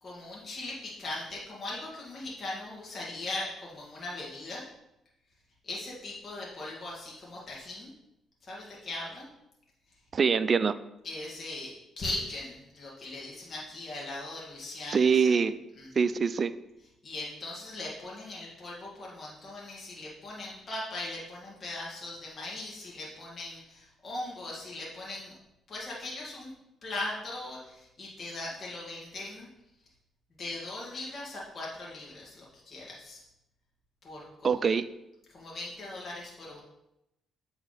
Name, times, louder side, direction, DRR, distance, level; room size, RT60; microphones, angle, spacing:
voice 1, 0.0-4.7 5.6-7.9 8.4-9.3 11.0-15.4 15.8-15.9 17.0-25.3 25.7-26.5 26.8-29.5 30.4-33.2 34.0-34.6 35.3-36.6, left 2 dB, 50° left, -5 dB, 1.9 m, -39 dB
voice 2, 10.1-10.7 14.9-15.5 16.0-16.5 34.4-34.8, right 6 dB, 45° right, 14 dB, 0.4 m, -24 dB
8.0 x 3.5 x 4.0 m, 0.87 s
supercardioid pair, 65°, 0 cm